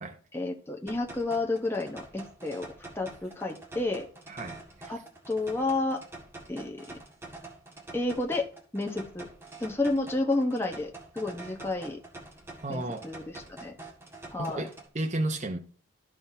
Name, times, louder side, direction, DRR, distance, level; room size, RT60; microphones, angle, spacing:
voice 1, 0.3-2.7 2.9-4.0 4.9-5.0 5.3-6.0 6.5-6.8 7.9-8.4 8.7-9.3 9.6-12.0 12.7-13.2 13.6-13.7 14.3-14.7, left 2 dB, 15° left, 1.0 m, -30 dB
sound 1, 0.9-14.9, right 2 dB, 15° right, 1.8 m, -46 dB
voice 2, 4.3-5.0 12.6-13.1 14.4-15.6, right 2 dB, 40° right, 0.9 m, -33 dB
14.0 x 5.5 x 2.7 m
head